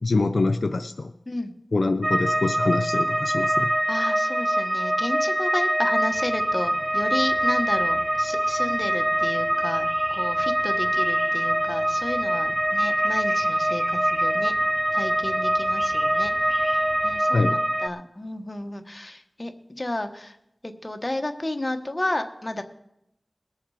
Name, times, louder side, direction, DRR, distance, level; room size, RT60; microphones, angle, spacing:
voice 1, 0.0-1.1 1.7-3.7 17.3-17.6, left 3 dB, 80° left, 8 dB, 0.5 m, -24 dB
sound 1, 2.0-17.9, right 1 dB, 25° right, 0.7 m, -24 dB
voice 2, 3.9-14.5 14.9-16.3 16.6-20.4 20.6-22.6, left 1 dB, 35° left, 6 dB, 1.3 m, -32 dB
sound 2, 6.1-17.2, equal, 60° right, 3.8 m, -44 dB
21.0 x 7.1 x 4.9 m, 0.82 s
wide cardioid pair, 40°, 0 cm